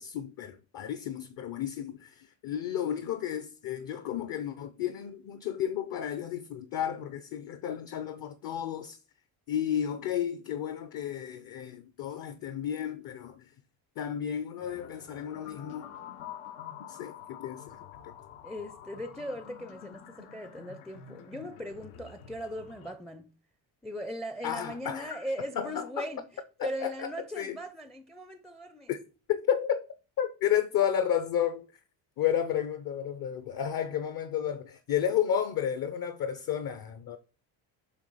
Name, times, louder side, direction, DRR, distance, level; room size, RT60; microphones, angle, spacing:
voice 1, 0.0-9.0 9.5-13.4 14.0-15.9 16.9-17.8 24.4-25.2 25.6-26.0 26.6-27.1 27.4-27.6 28.9-29.0 29.3-29.8 30.2-31.7 32.2-37.2, left 9 dB, 45° left, 0.7 m, -32 dB
sound 1, 14.6-23.0, left 9 dB, 85° left, 1.3 m, -47 dB
voice 2, 18.4-23.3 23.8-28.9, equal, ahead, 0.4 m, -39 dB
8.0 x 2.9 x 5.5 m
cardioid pair, 110°, 48 cm